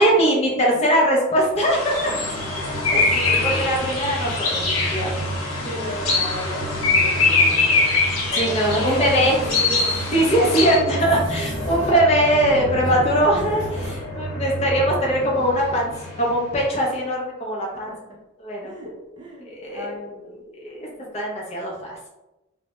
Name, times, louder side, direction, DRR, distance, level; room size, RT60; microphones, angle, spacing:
voice 1, 0.0-2.1 2.9-5.3 5.6-5.7 8.3-9.4 10.1-17.9 18.4-18.7 19.5-19.9 20.5-20.9 21.1-22.1, equal, 30° left, -3 dB, 0.5 m, -21 dB
sound 1, 1.3-17.1, right 1 dB, 65° left, 0.9 m, -31 dB
sound 2, 1.7-10.8, left 3 dB, 90° left, 0.6 m, -23 dB
voice 2, 3.1-3.9 5.6-7.9 8.3-11.0 14.6-14.8 15.1-15.4 15.8-15.9 17.7-18.0 18.6-19.5 19.7-20.4 20.9-21.1, right 1 dB, 20° right, -4 dB, 0.4 m, -35 dB
sound 3, 8.6-10.1 10.9-12.1 12.4-14.1, equal, 5° right, 0.9 m, -36 dB
2.2 x 2.1 x 2.8 m, 0.99 s
head